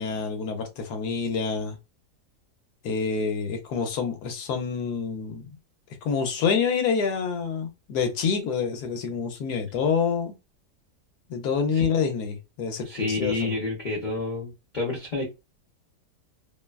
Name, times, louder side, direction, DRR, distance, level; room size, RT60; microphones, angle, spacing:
voice 1, 0.0-1.8 2.8-5.6 6.0-10.3 11.3-13.5, left 6 dB, 70° left, 1.2 m, -27 dB
voice 2, 12.8-15.2, left 3 dB, 55° left, 0.5 m, -29 dB
2.9 x 2.2 x 2.3 m
omnidirectional pair, 1.8 m